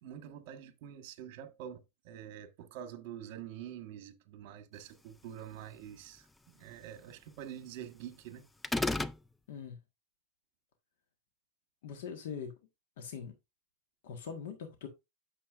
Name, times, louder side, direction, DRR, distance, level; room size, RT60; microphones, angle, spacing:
voice 1, 0.0-8.4, right 10 dB, 50° right, 1.5 m, -46 dB
sound 1, 8.6-9.2, left 2 dB, 5° left, 0.3 m, -30 dB
voice 2, 9.5-9.8 11.8-12.5 13.0-13.3 14.0-14.9, left 6 dB, 70° left, 1.5 m, -42 dB
9.0 x 6.8 x 2.5 m
supercardioid pair, 150°, 0 cm